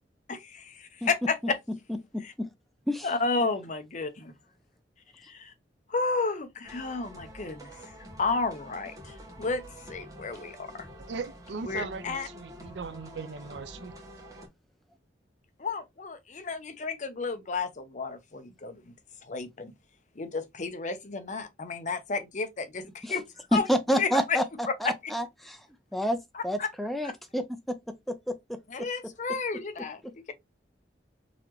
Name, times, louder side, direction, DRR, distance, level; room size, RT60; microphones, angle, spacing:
voice 1, 0.3-1.6 2.2-2.3 3.0-4.3 5.2-5.5 5.9-7.8 8.2-9.6 9.9-10.9 11.6-12.3 15.6-18.9 19.2-19.7 20.2-23.2 23.5-23.7 24.0-24.4 24.7-24.8 25.0-25.1 26.3-26.7 27.0-27.1 28.7-30.0, left 4 dB, 45° left, 0.7 m, -32 dB
voice 2, 2.1-2.5 2.9-3.1 23.0-23.1 23.5-24.4 24.8-25.6 25.9-26.2 26.4-27.4 28.1-28.2 28.5-28.6, equal, ahead, 0.5 m, -28 dB
sound 1, 6.6-14.5, equal, 20° right, 1.1 m, -47 dB
voice 3, 11.1-13.9, right 4 dB, 75° right, 0.5 m, -38 dB
4.0 x 2.9 x 3.0 m
head